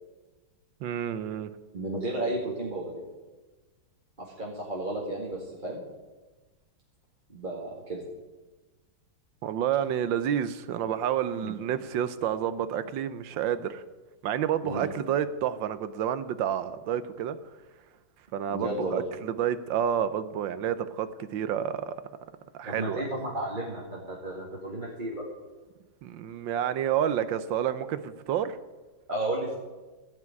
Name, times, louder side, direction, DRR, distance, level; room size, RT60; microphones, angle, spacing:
voice 1, 0.8-1.5 9.4-13.8 14.2-17.4 18.3-22.0 22.5-23.0 26.0-28.6, right 9 dB, 70° right, 13 dB, 1.4 m, -29 dB
voice 2, 1.7-3.0 4.2-5.8 7.3-8.0 11.4-11.5 14.6-14.9 18.5-19.0 22.6-25.2 29.1-29.6, right 1 dB, 25° right, -4 dB, 2.1 m, -33 dB
15.0 x 6.1 x 9.6 m, 1.2 s
omnidirectional pair, 2.3 m